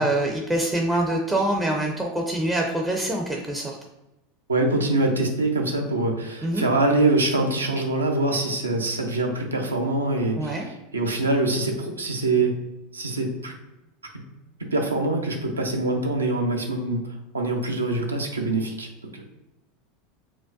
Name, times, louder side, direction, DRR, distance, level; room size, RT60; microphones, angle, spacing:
voice 1, 0.0-3.8 6.4-6.6 10.4-10.7, right 1 dB, 10° right, 1 dB, 0.4 m, -25 dB
voice 2, 4.5-12.6 12.9-13.5 14.7-17.0 17.3-19.2, right 2 dB, 80° right, 2 dB, 0.5 m, -24 dB
4.5 x 2.2 x 2.5 m, 0.97 s
figure-of-eight pair, 80°, 0 cm